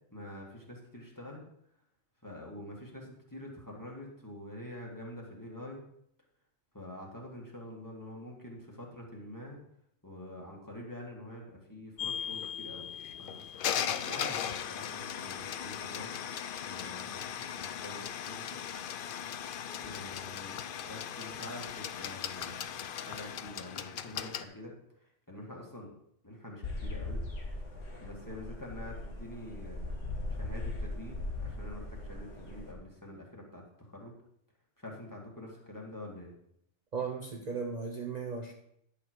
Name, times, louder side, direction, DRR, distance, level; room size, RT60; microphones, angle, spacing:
voice 1, 0.1-1.4 2.2-5.8 6.7-9.6 10.0-12.8 13.2-13.5 14.0-16.2 16.6-18.6 19.8-20.6 20.8-24.7 25.3-25.9 26.2-27.2 28.0-29.9 30.3-34.1 34.8-36.3, left 1 dB, 15° left, -2 dB, 2.1 m, -46 dB
sound 1, 12.0-24.4, left 9 dB, 60° left, 0.6 m, -38 dB
sound 2, 26.6-32.7, left 2 dB, 85° left, 2.0 m, -39 dB
voice 2, 36.9-38.5, right 5 dB, 40° right, 1 dB, 0.9 m, -36 dB
10.5 x 6.8 x 4.6 m, 0.71 s
omnidirectional pair, 1.2 m